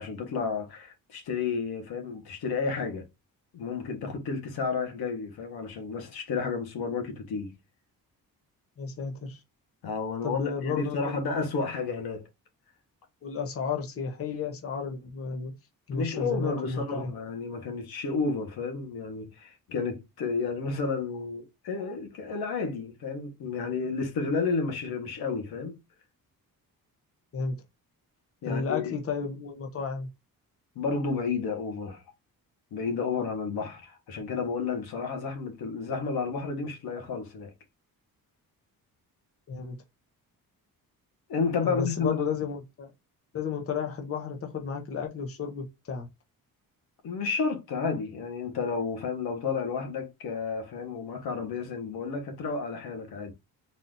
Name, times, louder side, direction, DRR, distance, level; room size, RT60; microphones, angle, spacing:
voice 1, 0.0-3.0 3.5-7.5 9.8-12.3 15.9-25.8 28.4-28.9 30.7-32.0 32.7-37.5 41.3-42.2 47.0-53.3, left 4 dB, 90° left, 1.3 m, -31 dB
voice 2, 8.8-9.4 10.2-11.2 13.2-15.5 15.9-17.1 27.3-27.6 28.4-30.1 39.5-39.8 41.6-42.9 43.3-46.1, left 5 dB, 40° left, 0.9 m, -32 dB
4.2 x 2.6 x 3.7 m
wide cardioid pair, 145°, 36 cm